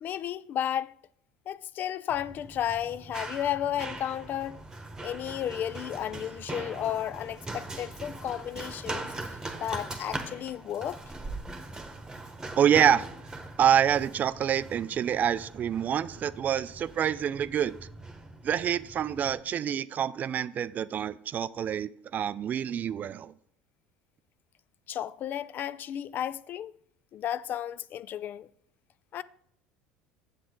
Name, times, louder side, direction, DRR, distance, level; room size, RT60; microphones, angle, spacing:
voice 1, 0.0-1.0 1.5-4.6 5.0-9.1 9.6-11.0 24.9-26.8 27.1-28.5 29.1-29.2, left 10 dB, 45° left, 0.3 m, -33 dB
Run, 2.1-19.4, right 2 dB, 15° right, 1.2 m, -41 dB
voice 2, 12.6-13.1 13.6-17.7 18.4-23.3, right 9 dB, 40° right, 0.3 m, -26 dB
7.8 x 7.4 x 3.7 m
hypercardioid pair, 70°, 5 cm